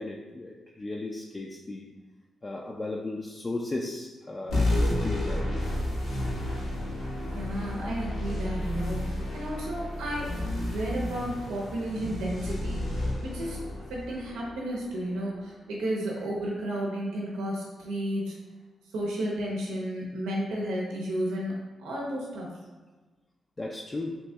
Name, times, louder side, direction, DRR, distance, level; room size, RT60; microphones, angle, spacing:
voice 1, 0.0-1.9 2.4-5.5 7.7-7.9 23.6-24.2, left 2 dB, 35° left, -1 dB, 0.4 m, -36 dB
sound 1, 4.5-15.4, left 1 dB, 80° left, 0.9 m, -31 dB
voice 2, 7.2-12.8 13.2-13.6 13.9-18.3 18.9-21.5 21.8-22.5, right 1 dB, 80° right, -3 dB, 0.6 m, -32 dB
2.9 x 2.6 x 3.3 m, 1.3 s
supercardioid pair, 50°, 0 cm